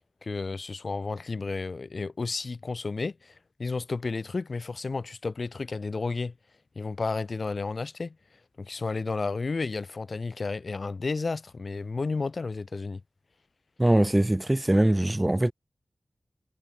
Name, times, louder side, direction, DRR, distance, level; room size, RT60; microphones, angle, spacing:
voice 1, 0.2-3.3 3.6-6.3 6.8-8.1 8.6-13.0, left 4 dB, 55° left, 2.8 m, -32 dB
voice 2, 13.8-15.5, right 1 dB, 15° right, 0.5 m, -22 dB
wide cardioid pair, 110°, 0 cm